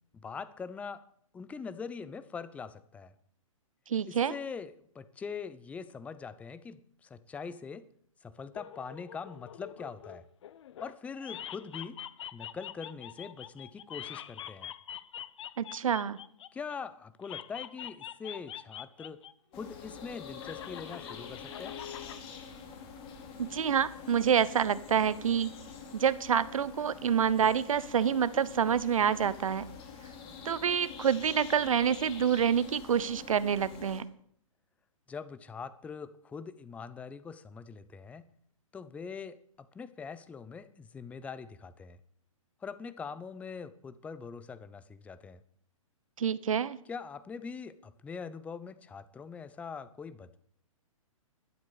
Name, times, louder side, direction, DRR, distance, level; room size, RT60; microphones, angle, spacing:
voice 1, 0.1-1.0 1.3-3.1 4.0-7.8 8.2-10.3 10.8-12.0 12.3-14.7 16.5-19.2 19.5-21.8 35.1-38.3 38.7-42.0 42.6-45.4 46.8-50.4, left 5 dB, 10° left, 15 dB, 0.5 m, -43 dB
voice 2, 3.9-4.3 15.6-16.2 23.4-25.5 25.9-29.6 30.4-34.0 46.2-46.8, right 8 dB, 70° right, 17 dB, 1.0 m, -27 dB
sound 1, 8.5-10.9 11.2-16.8 17.2-19.3 19.6-22.2, left 10 dB, 55° left, 0.9 m, -45 dB
sound 2, 19.5-34.0, left 6 dB, 30° left, 2.8 m, -46 dB
12.0 x 9.7 x 8.4 m, 0.65 s
hypercardioid pair, 130°, 18 cm